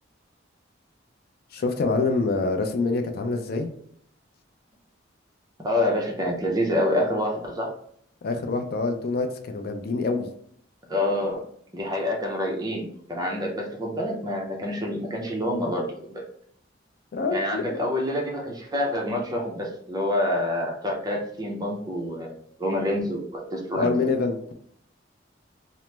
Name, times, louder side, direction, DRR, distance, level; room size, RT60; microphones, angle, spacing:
voice 1, 1.5-3.7 8.2-10.3 17.1-17.8 23.7-24.4, left 3 dB, 55° left, 6 dB, 0.4 m, -26 dB
voice 2, 5.6-7.7 10.9-11.4 11.7-15.9 17.3-24.1, left 1 dB, 20° right, 0 dB, 0.6 m, -27 dB
2.9 x 2.0 x 3.2 m, 0.65 s
head